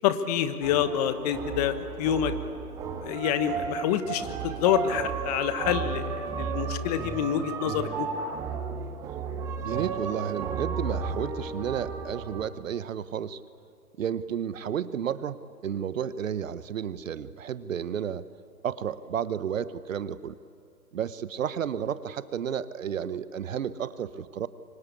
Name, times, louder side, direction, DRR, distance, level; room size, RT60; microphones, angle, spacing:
voice 1, 0.0-2.3 3.0-8.1, left 10 dB, 25° left, 11 dB, 1.1 m, -27 dB
sound 1, 0.6-12.5, right 5 dB, 5° right, 0.6 m, -33 dB
voice 2, 9.6-13.4 14.0-18.3 18.6-20.3 20.9-24.5, right 8 dB, 55° right, 16 dB, 1.1 m, -32 dB
27.5 x 24.5 x 8.5 m, 2.4 s
figure-of-eight pair, 135°, 47 cm